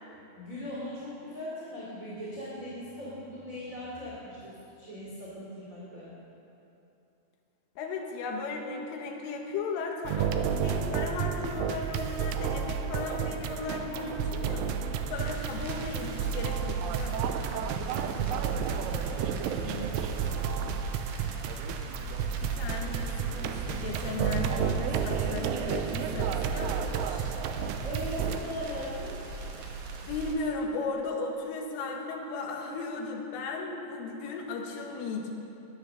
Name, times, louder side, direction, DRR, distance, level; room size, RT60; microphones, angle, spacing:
voice 1, 0.3-6.2 17.8-18.6 19.4-20.8 27.8-29.2, equal, 25° right, -7 dB, 2.3 m, -40 dB
voice 2, 7.8-14.7 15.1-17.3 22.4-27.3 30.1-35.3, left 4 dB, 85° left, 1 dB, 4.1 m, -36 dB
sound 1, 10.1-28.4, right 7 dB, 90° right, 3.3 m, -31 dB
sound 2, 15.2-30.3, right 2 dB, 60° right, 2.5 m, -40 dB
19.5 x 10.0 x 6.6 m, 2.8 s
omnidirectional pair, 5.6 m